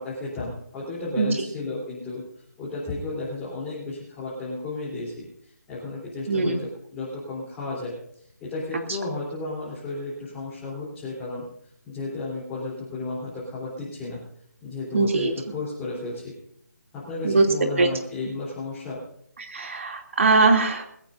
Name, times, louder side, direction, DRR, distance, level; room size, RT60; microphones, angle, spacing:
voice 1, 0.0-2.2 2.6-7.9 8.4-11.5 11.8-14.2 14.6-16.3 16.9-19.0, left 3 dB, 10° left, -8 dB, 3.4 m, -33 dB
voice 2, 14.9-15.3 17.2-17.4 17.8-17.9 19.4-20.9, right 3 dB, 45° right, 4 dB, 2.7 m, -21 dB
21.5 x 14.5 x 2.6 m, 0.70 s
figure-of-eight pair, 170°, 9 cm